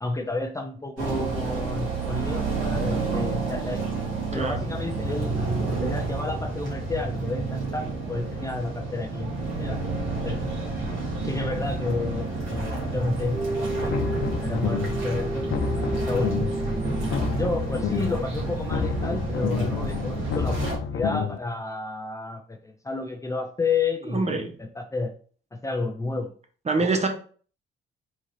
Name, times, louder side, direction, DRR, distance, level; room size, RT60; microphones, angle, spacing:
voice 1, 0.0-3.8 4.3-5.5 5.8-9.3 9.6-9.8 10.1-10.4 11.2-14.1 14.4-15.6 16.1-16.4 17.3-25.1 25.5-26.3 26.8-26.9, left 3 dB, 15° left, 5 dB, 0.5 m, -31 dB
sound 1, 1.0-20.8, right 3 dB, 75° right, 2.3 m, -30 dB
sound 2, 13.3-19.4, right 2 dB, ahead, 1.7 m, -33 dB
sound 3, 13.7-15.0 15.3-16.6 16.9-18.2 18.5-21.4, left 6 dB, 65° left, 0.5 m, -29 dB
voice 2, 24.1-24.5 26.7-27.1, right 3 dB, 35° right, 5 dB, 1.1 m, -25 dB
4.1 x 3.6 x 3.2 m, 0.43 s
cardioid pair, 90°, 20 cm